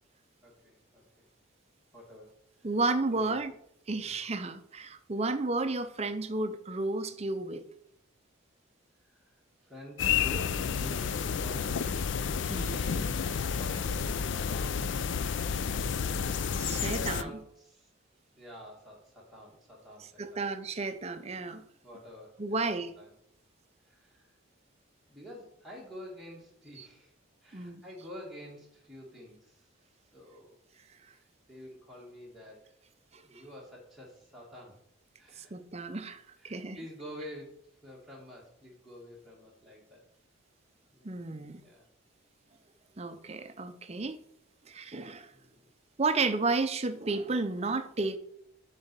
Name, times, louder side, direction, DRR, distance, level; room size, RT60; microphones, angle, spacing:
voice 1, 0.4-1.0 1.9-2.7 3.1-3.4 3.9-4.2 5.2-5.4 9.0-12.0 12.3-14.8 16.8-17.9 18.4-20.5 21.8-23.1 23.8-24.4 25.1-27.1 27.4-29.7 30.1-30.6 31.1-32.7 33.2-34.8 35.2-35.6 36.4-40.0 40.9-41.3 41.6-41.9 45.3-45.7, equal, ahead, 1.7 m, -49 dB
voice 2, 2.6-3.5 3.9-7.6 12.5-12.7 16.6-17.3 20.2-21.6 22.4-22.9 26.8-26.9 27.5-27.8 33.1-33.2 35.4-36.8 41.0-41.6 43.0-44.3 44.7-45.3 46.0-48.2, right 3 dB, 30° right, 0.5 m, -32 dB
sound 1, 10.0-17.2, left 6 dB, 60° left, 0.4 m, -30 dB
7.3 x 4.1 x 6.7 m
head